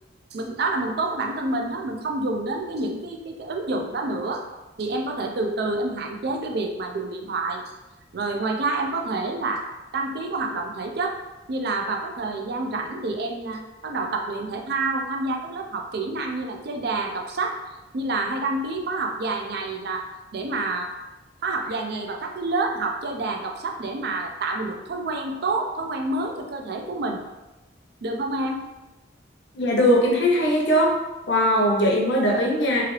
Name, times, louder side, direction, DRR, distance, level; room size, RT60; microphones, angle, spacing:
voice 1, 0.3-4.4 4.8-7.7 8.1-9.6 9.9-11.2 11.5-17.6 17.9-20.0 20.3-21.0 21.4-27.2 28.0-28.6, right 2 dB, 60° right, 3 dB, 0.4 m, -28 dB
voice 2, 29.5-30.9 31.3-32.8, equal, 70° left, -1 dB, 0.7 m, -20 dB
3.1 x 2.4 x 3.1 m, 1.1 s
head